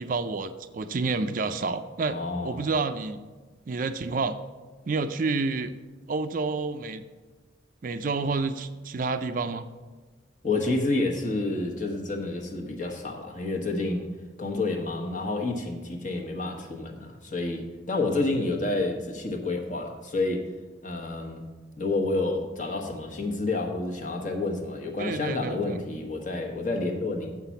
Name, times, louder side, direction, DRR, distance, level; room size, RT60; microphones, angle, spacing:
voice 1, 0.0-2.2 2.4-3.2 3.7-4.4 4.9-5.8 6.1-7.0 7.8-9.7 25.0-25.8, right 3 dB, 45° right, 10 dB, 0.4 m, -29 dB
voice 2, 2.1-2.6 10.4-14.1 14.4-20.5 20.8-21.4 21.7-27.4, left 2 dB, 45° left, 2 dB, 1.1 m, -29 dB
7.4 x 5.8 x 7.0 m, 1.3 s
head